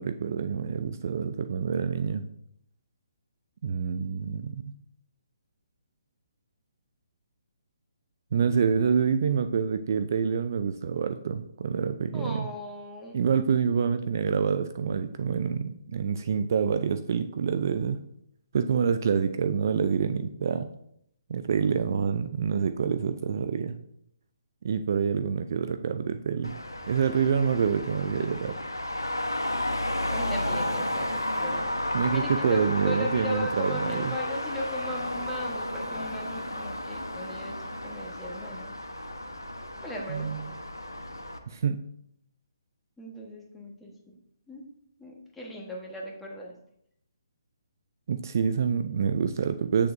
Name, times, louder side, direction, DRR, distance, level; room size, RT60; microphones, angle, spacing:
voice 1, 0.0-2.3 3.6-4.7 8.3-12.5 13.1-18.0 18.5-20.7 21.3-23.8 24.6-26.5 26.9-28.6 31.9-34.1 40.1-40.4 41.5-41.8 48.1-49.9, right 6 dB, 50° right, 10 dB, 0.4 m, -27 dB
voice 2, 12.1-13.2 30.1-38.7 39.8-40.6 43.0-44.2 44.5-44.6 45.0-46.5, left 1 dB, 5° left, -2 dB, 1.3 m, -37 dB
Traffic noise roadway noise, 26.4-41.4, left 1 dB, 90° left, 0.9 m, -33 dB
7.7 x 6.7 x 2.6 m, 0.73 s
figure-of-eight pair, 140°, 2 cm